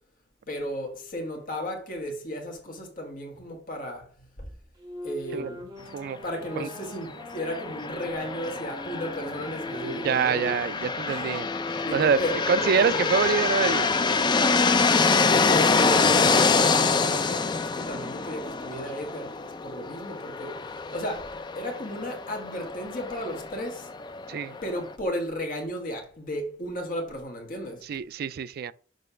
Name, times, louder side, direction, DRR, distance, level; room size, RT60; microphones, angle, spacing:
voice 1, 0.5-4.1 4.4-4.5 5.0-5.9 6.2-10.5 10.8-11.4 11.8-13.0 15.1-20.6 20.9-23.9 24.6-27.8, equal, 50° left, 1.3 m, -34 dB
Wind instrument woodwind instrument, 4.8-10.6 11.3-16.8, equal, 20° right, 1.7 m, -42 dB
sound 1, 7.3-24.9, left 4 dB, 25° left, 0.4 m, -26 dB
voice 2, 9.9-11.5 11.9-12.2 12.5-13.9 24.3-24.6 27.9-28.7, right 6 dB, 55° right, 0.3 m, -25 dB
6.5 x 3.2 x 5.5 m
head